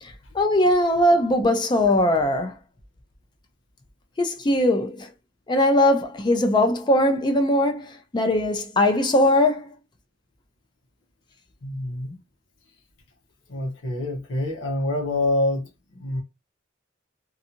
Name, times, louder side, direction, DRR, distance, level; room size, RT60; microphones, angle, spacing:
voice 1, 0.0-2.6 4.2-5.1 5.5-9.7, left 1 dB, 25° left, 0.4 m, -20 dB
voice 2, 11.6-12.2 13.5-16.2, left 1 dB, 85° left, 0.8 m, -26 dB
2.6 x 2.3 x 2.7 m
head